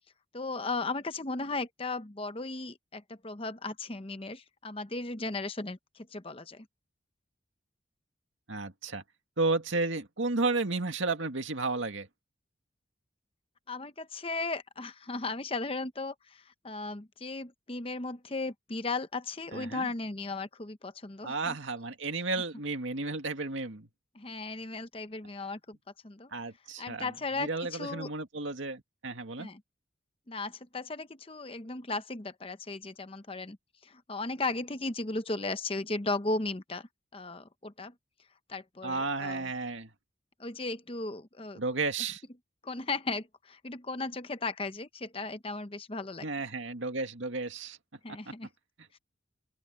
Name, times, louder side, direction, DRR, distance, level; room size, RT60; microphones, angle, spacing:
voice 1, 0.3-6.7 13.7-21.6 24.1-25.8 26.0-26.3 26.8-28.1 29.4-29.6 30.3-33.6 33.8-37.9 38.5-39.5 40.4-41.6 42.6-46.3 48.0-48.5, left 3 dB, 30° left, 0.8 m, -36 dB
voice 2, 8.5-9.0 9.4-12.1 19.5-19.9 21.2-23.9 26.3-27.1 27.4-29.5 38.8-39.9 41.6-42.2 46.2-47.8 48.1-48.3, right 3 dB, 75° right, 2.1 m, -33 dB
open air
head